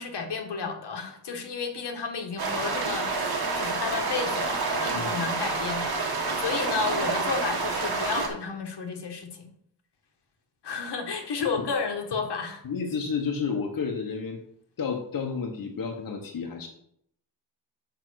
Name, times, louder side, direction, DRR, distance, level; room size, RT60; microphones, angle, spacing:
voice 1, 0.0-9.5 10.6-12.6, left 5 dB, 75° left, 4 dB, 1.4 m, -32 dB
sound 1, 2.4-8.3, right 3 dB, 65° right, 1.6 m, -28 dB
voice 2, 12.6-14.4 14.8-16.7, left 5 dB, 55° left, 1 dB, 1.1 m, -31 dB
7.0 x 5.0 x 6.2 m, 0.71 s
wide cardioid pair, 145°, 41 cm